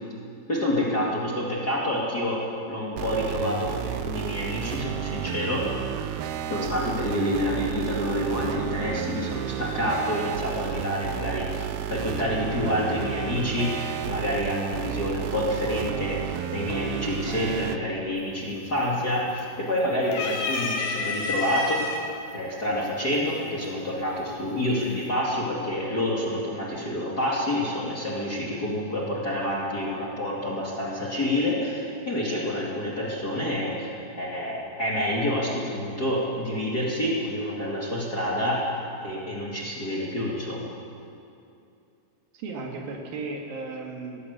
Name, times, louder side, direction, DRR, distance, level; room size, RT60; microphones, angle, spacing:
voice 1, 0.5-2.4 2.7-5.7 6.5-21.8 22.3-38.6 39.0-40.7, left 1 dB, 30° left, -5 dB, 2.2 m, -28 dB
sound 1, 3.0-17.8, right 11 dB, 80° right, 2.5 m, -32 dB
sound 2, 18.2-18.6 19.0-19.7 20.1-22.0 22.9-23.0 24.2-24.6, left 2 dB, 90° left, 4.5 m, -29 dB
voice 2, 42.3-44.3, right 3 dB, 65° right, 1 dB, 3.5 m, -35 dB
19.0 x 17.0 x 8.1 m, 2.6 s
omnidirectional pair, 4.6 m